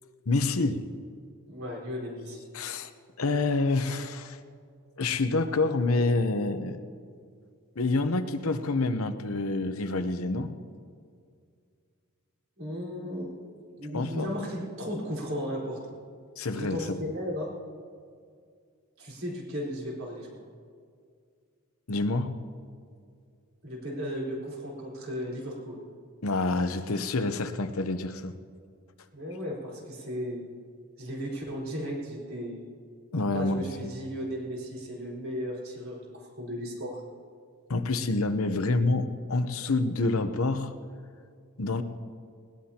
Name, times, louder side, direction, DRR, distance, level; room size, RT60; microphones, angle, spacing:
voice 1, 0.3-0.9 2.5-2.9 3.2-4.4 5.0-6.8 7.8-10.5 13.9-14.3 16.4-17.0 21.9-22.3 26.2-28.3 33.1-33.9 37.7-40.7 41.6-41.8, left 3 dB, 75° left, 8 dB, 0.9 m, -27 dB
voice 2, 1.5-2.4 12.6-13.3 13.8-15.8 16.5-17.5 19.0-20.3 23.6-25.8 29.1-30.4 31.0-32.6 33.3-37.0, equal, 60° right, -4 dB, 4.5 m, -35 dB
20.5 x 19.0 x 2.9 m, 2.2 s
head